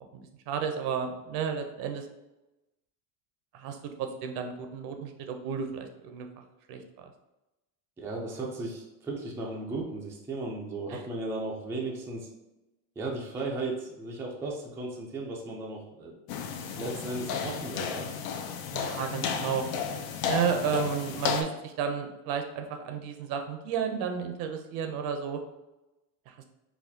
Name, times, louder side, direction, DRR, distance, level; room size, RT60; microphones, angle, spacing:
voice 1, 0.5-2.1 3.5-6.3 6.7-7.1 10.9-11.0 18.7-19.6 20.3-25.4 26.3-26.4, right 7 dB, 60° right, 5 dB, 0.6 m, -32 dB
voice 2, 8.0-12.3 13.0-16.1 16.8-18.1, right 2 dB, 5° right, -2 dB, 0.4 m, -35 dB
sound 1, 16.3-21.4, left 6 dB, 60° left, 0.6 m, -33 dB
4.1 x 2.3 x 2.7 m, 0.99 s
supercardioid pair, 120°, 42 cm